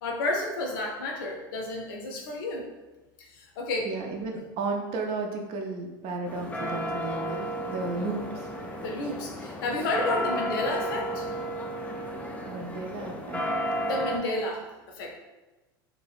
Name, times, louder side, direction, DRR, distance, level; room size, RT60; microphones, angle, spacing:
voice 1, 0.0-2.7 3.2-3.9 8.7-11.3 13.8-15.2, left 2 dB, 70° left, 0 dB, 0.5 m, -31 dB
voice 2, 3.8-8.5 12.5-13.4, right 3 dB, 50° right, 2 dB, 0.4 m, -33 dB
sound 1, 6.3-14.2, equal, 10° left, 0.3 m, -33 dB
2.6 x 2.1 x 2.4 m, 1.1 s
hypercardioid pair, 85°, 12 cm